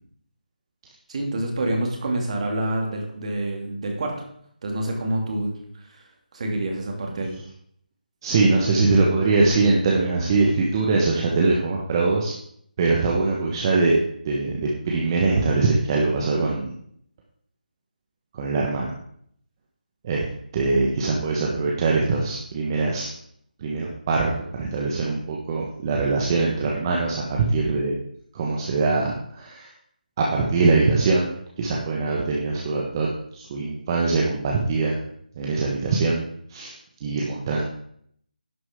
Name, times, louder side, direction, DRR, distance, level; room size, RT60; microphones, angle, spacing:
voice 1, 1.1-4.2 4.6-5.5 5.8-6.0 6.3-7.4, right 1 dB, 45° right, 1 dB, 2.5 m, -27 dB
voice 2, 8.2-12.3 12.8-14.0 14.2-16.7 18.3-18.9 20.0-23.1 23.6-24.3 24.6-27.9 28.3-29.7 30.2-33.1 33.3-35.0 35.4-36.2 36.5-36.7 37.0-37.6, right 3 dB, 25° right, -2 dB, 1.3 m, -22 dB
11.0 x 7.8 x 3.7 m, 0.67 s
figure-of-eight pair, 160°, 5 cm